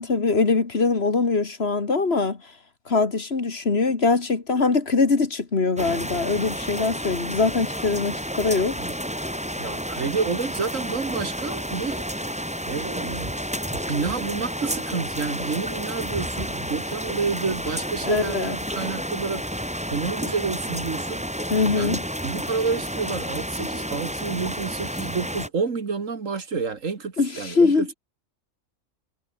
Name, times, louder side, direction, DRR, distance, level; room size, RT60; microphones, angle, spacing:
voice 1, 0.0-2.4 2.9-8.8 18.1-18.6 21.5-22.0 27.2-27.9, left 4 dB, 50° left, 2.2 m, -22 dB
sound 1, 5.8-25.5, equal, 5° right, 6.2 m, -31 dB
voice 2, 9.6-12.3 12.7-13.3 13.7-19.6 19.9-21.2 21.7-27.9, right 5 dB, 70° right, 2.3 m, -29 dB
omnidirectional pair, 1.4 m